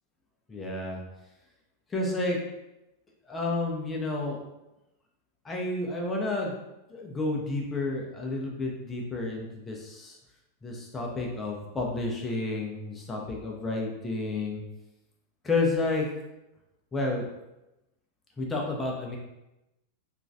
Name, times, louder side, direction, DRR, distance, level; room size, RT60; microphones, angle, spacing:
voice 1, 0.5-1.0 1.9-2.4 3.3-4.4 5.4-6.6 6.9-10.2 10.6-14.6 15.4-16.1 16.9-17.3 18.4-19.2, left 2 dB, 15° left, -1 dB, 0.6 m, -30 dB
2.9 x 2.4 x 2.6 m, 0.94 s
figure-of-eight pair, 90°, 0 cm